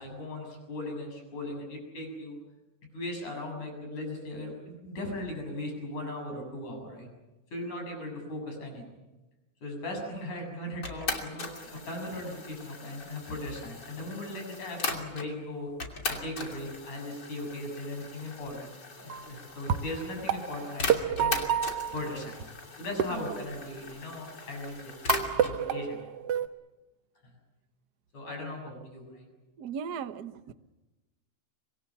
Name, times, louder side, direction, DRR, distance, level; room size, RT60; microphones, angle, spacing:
voice 1, 0.0-2.4 2.9-7.1 7.5-8.8 9.6-15.7 16.1-18.7 19.0-21.4 21.9-22.4 22.8-26.0 27.2-27.3 28.1-29.3, left 1 dB, 80° left, 3 dB, 8.8 m, -38 dB
sound 1, 10.8-15.3 15.8-25.6, left 3 dB, 35° left, 3.3 m, -39 dB
sound 2, 19.0-19.3 19.7-22.4 23.0-24.1 25.1-26.5, right 8 dB, 60° right, 1.9 m, -29 dB
voice 2, 23.1-23.4 25.3-25.5 29.6-30.5, right 7 dB, 80° right, 11 dB, 0.8 m, -38 dB
25.5 x 22.5 x 7.2 m, 1.1 s
omnidirectional pair, 3.4 m